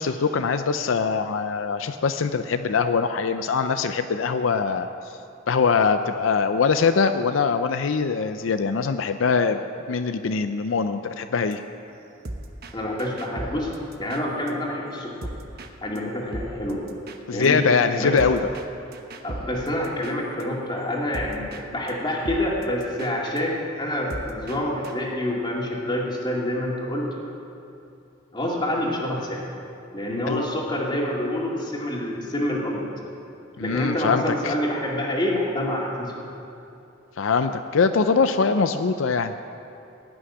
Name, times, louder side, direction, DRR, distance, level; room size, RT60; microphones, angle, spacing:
voice 1, 0.0-5.2 5.5-9.6 9.9-11.6 17.3-18.4 30.3-30.4 33.6-34.5 37.2-39.3, left 5 dB, 80° left, 9 dB, 0.5 m, -22 dB
sound 1, 11.3-14.5 14.8-15.7 16.0-16.1 16.3-21.6 21.9-22.0 22.2-25.0, right 1 dB, 50° right, 1.0 m, -39 dB
voice 2, 12.7-13.7 14.0-15.3 15.8-16.8 17.3-17.6 18.0-18.2 19.2-27.1 28.3-29.4 29.9-32.9 33.6-36.1, left 1 dB, 25° left, -3 dB, 2.3 m, -27 dB
17.0 x 6.3 x 9.7 m, 2.7 s
head